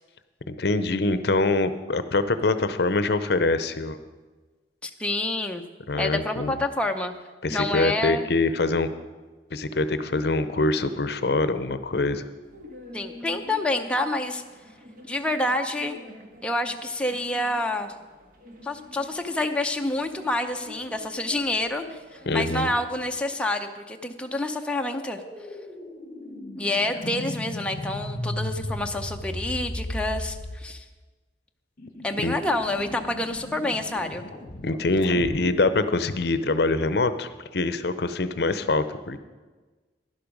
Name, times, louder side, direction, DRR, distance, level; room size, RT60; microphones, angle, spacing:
voice 1, 0.5-4.0 5.9-6.5 7.4-8.9 9.5-12.2 22.3-22.7 32.2-32.4 34.6-39.2, left 2 dB, 65° left, 12 dB, 0.6 m, -24 dB
voice 2, 4.8-5.6 5.9-7.1 7.5-8.3 12.9-14.4 15.0-16.0 16.4-17.9 18.6-25.2 26.6-30.9 32.0-34.3, left 1 dB, 5° left, 3 dB, 0.6 m, -28 dB
sound 1, 12.4-23.1, left 1 dB, 50° right, 1.6 m, -46 dB
sound 2, 24.7-30.7 31.8-35.5, left 1 dB, 50° left, 1.2 m, -36 dB
12.0 x 11.0 x 5.2 m, 1.3 s
head